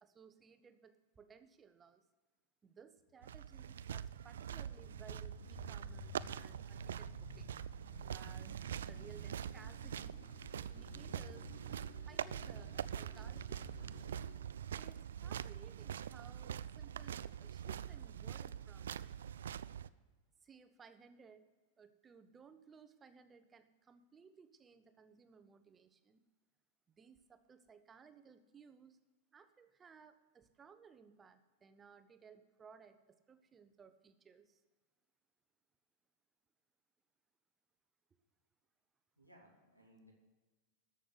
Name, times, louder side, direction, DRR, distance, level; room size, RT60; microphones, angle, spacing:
voice 1, 0.0-2.0 2.6-7.6 8.0-8.5 8.9-10.2 10.6-14.2 14.7-18.9 20.4-21.5 21.8-26.2 26.9-29.0 29.3-34.6, right 6 dB, 20° right, 10 dB, 0.9 m, -61 dB
sound 1, 3.1-14.4, left 8 dB, 55° left, 1.0 m, -57 dB
sound 2, 3.2-19.9, right 9 dB, 65° right, 0.3 m, -44 dB
voice 2, 39.2-40.1, equal, 90° left, 0 dB, 2.7 m, -63 dB
13.5 x 6.5 x 7.8 m, 1.3 s
figure-of-eight pair, 90°, 0 cm